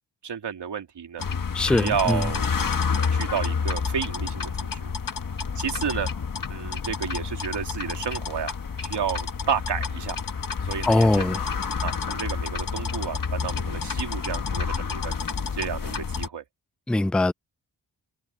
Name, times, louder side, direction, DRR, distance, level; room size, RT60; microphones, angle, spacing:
voice 1, 0.2-1.2 1.6-4.9 5.5-6.1 6.5-10.2 10.6-11.3 11.8-15.1 15.6-16.4, right 7 dB, 90° right, 2.9 m, -31 dB
sound 1, 1.2-16.3, left 5 dB, 55° left, 1.6 m, -29 dB
voice 2, 1.5-2.2 10.9-11.4 16.9-17.3, left 2 dB, 5° left, 0.3 m, -21 dB
wide cardioid pair, 80°, 40 cm